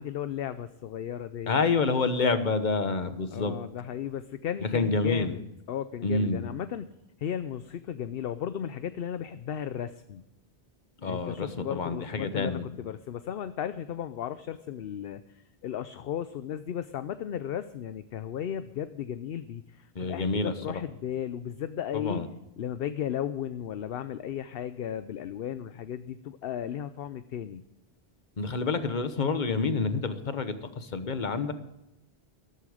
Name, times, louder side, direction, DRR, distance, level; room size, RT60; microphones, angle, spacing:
voice 1, 0.0-1.5 3.3-6.9 7.2-10.2 11.0-22.2 22.6-27.6, left 9 dB, 65° left, 12 dB, 0.8 m, -35 dB
voice 2, 1.5-3.6 4.6-5.3 6.0-6.5 11.0-12.6 19.9-20.8 21.9-22.3 28.4-31.5, left 4 dB, 45° left, 10 dB, 1.2 m, -28 dB
13.5 x 13.5 x 5.0 m, 0.90 s
omnidirectional pair, 1.1 m